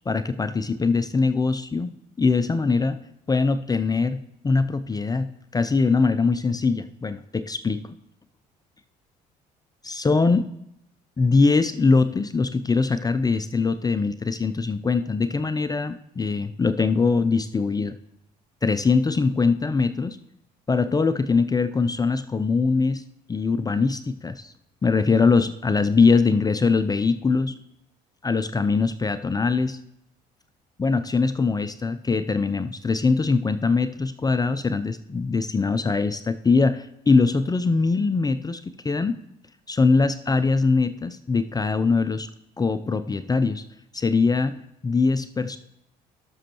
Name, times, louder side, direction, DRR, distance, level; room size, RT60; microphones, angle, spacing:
voice 1, 0.1-3.0 3.3-5.3 5.5-8.0 9.8-10.5 11.2-18.0 18.6-20.2 20.7-23.0 23.3-24.5 24.8-27.5 28.2-29.8 30.8-39.1 39.7-42.3 42.6-43.6 43.9-44.6 44.8-45.6, left 4 dB, 20° left, 11 dB, 0.5 m, -22 dB
12.5 x 6.2 x 3.0 m, 0.77 s
hypercardioid pair, 65°, 20 cm